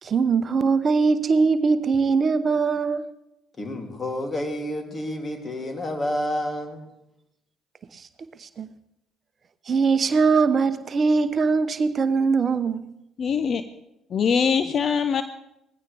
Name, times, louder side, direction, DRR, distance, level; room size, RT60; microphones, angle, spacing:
voice 1, 0.0-3.0 7.9-8.0 8.4-8.7 9.7-12.9, right 4 dB, 45° right, 0.8 m, -21 dB
voice 2, 3.6-6.8, left 1 dB, 35° left, 3.1 m, -29 dB
voice 3, 13.2-13.6 14.1-15.2, left 6 dB, 50° left, 0.7 m, -22 dB
19.0 x 15.5 x 3.5 m
hypercardioid pair, 50°, 0 cm